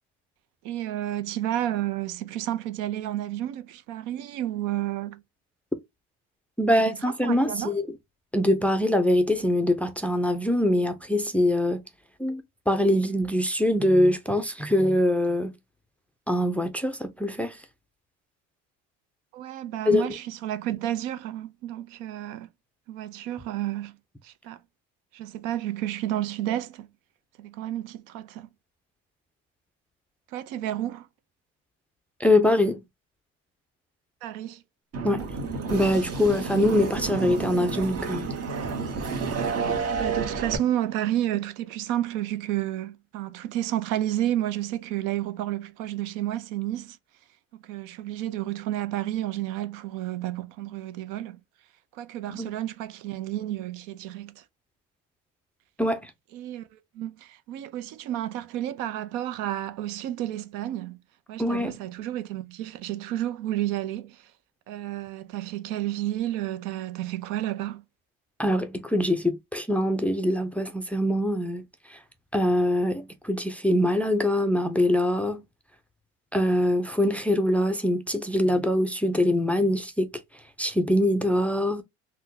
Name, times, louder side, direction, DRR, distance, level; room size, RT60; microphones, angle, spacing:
voice 1, 0.6-5.2 6.7-7.7 19.3-22.5 22.9-24.0 24.2-24.6 25.1-26.9 27.4-28.5 30.3-31.1 34.2-34.6 35.0-35.3 39.8-47.0 47.5-51.4 51.9-54.4 56.3-61.0 61.3-64.3 64.7-67.8, right 13 dB, 75° right, 0.6 m, -31 dB
voice 2, 6.6-7.9 8.3-11.8 12.2-15.5 16.3-17.6 19.9-20.1 32.2-32.8 35.0-35.3 35.7-38.3 52.3-52.5 55.8-56.1 61.4-61.7 68.4-71.6 71.9-72.0 72.3-75.4 76.3-80.1 80.6-81.8, left 1 dB, 5° left, 0.4 m, -23 dB
sound 1, 34.9-40.6, right 5 dB, 50° right, 1.2 m, -30 dB
3.6 x 2.2 x 2.8 m
supercardioid pair, 100°, 32 cm